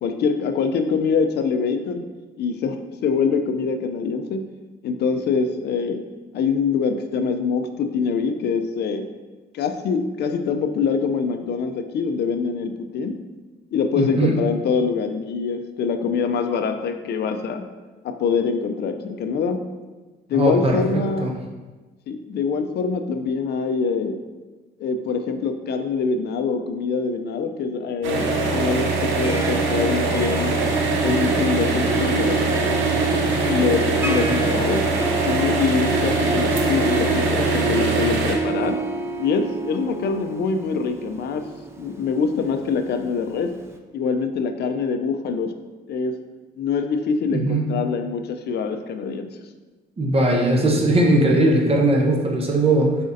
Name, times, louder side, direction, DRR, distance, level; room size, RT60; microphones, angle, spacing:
voice 1, 0.0-2.0 2.4-4.4 4.8-6.0 6.3-9.1 9.5-13.1 13.7-17.6 18.0-19.6 20.3-21.3 22.1-24.2 24.8-30.6 31.0-32.4 33.4-34.8 35.2-38.8 39.2-41.4 41.8-43.5 43.9-45.5 45.9-46.2 46.6-49.3, left 5 dB, 55° left, 6 dB, 0.4 m, -24 dB
voice 2, 14.0-14.3 20.3-21.3 47.3-47.7 50.0-53.0, right 1 dB, 30° right, 0 dB, 0.8 m, -19 dB
sound 1, 28.0-38.3, right 3 dB, 90° right, 0.7 m, -22 dB
Harp, 29.0-43.0, right 3 dB, 15° right, 0.4 m, -28 dB
4.2 x 3.8 x 2.6 m, 1.3 s
cardioid pair, 90°, 20 cm